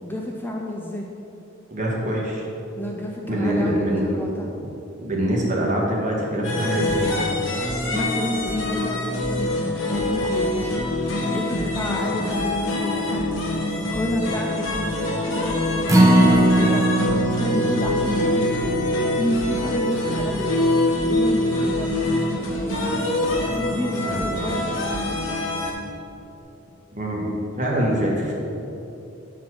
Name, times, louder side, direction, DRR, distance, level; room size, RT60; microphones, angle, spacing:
voice 1, 0.0-1.1 2.8-4.5 7.9-10.7 11.3-13.2 13.7-16.9 17.4-18.6 19.1-20.5 21.0-22.0 23.4-24.9, left 1 dB, 10° left, 0 dB, 0.4 m, -30 dB
voice 2, 1.7-2.5 3.3-4.0 5.0-7.1 24.0-24.2 26.9-27.3 27.6-28.3, right 1 dB, 40° right, -3 dB, 1.3 m, -24 dB
sound 1, 6.4-25.7, left 1 dB, 70° left, 1.1 m, -25 dB
Acoustic guitar, 15.9-22.2 22.6-22.7 23.1-23.2, right 1 dB, 15° right, 0.8 m, -22 dB
5.9 x 4.3 x 6.2 m, 2.9 s
head